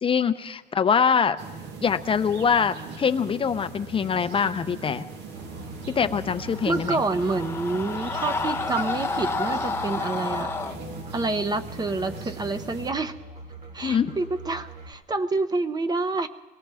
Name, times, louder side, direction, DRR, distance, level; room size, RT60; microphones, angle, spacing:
voice 1, 0.0-1.4 1.8-5.1 6.0-7.0 13.8-14.1, left 6 dB, 30° left, 10 dB, 0.5 m, -23 dB
sound 1, 1.4-12.9, right 4 dB, 80° right, 1.3 m, -40 dB
Musical instrument, 5.3-14.9, right 1 dB, 60° right, 6.4 m, -43 dB
Screaming, 6.4-10.8, left 3 dB, 15° left, 1.0 m, -30 dB
voice 2, 6.7-10.5 11.1-13.1 13.7-16.3, right 3 dB, 25° right, 11 dB, 0.7 m, -27 dB
23.5 x 18.0 x 3.4 m, 1.2 s
cardioid pair, 110°, 17 cm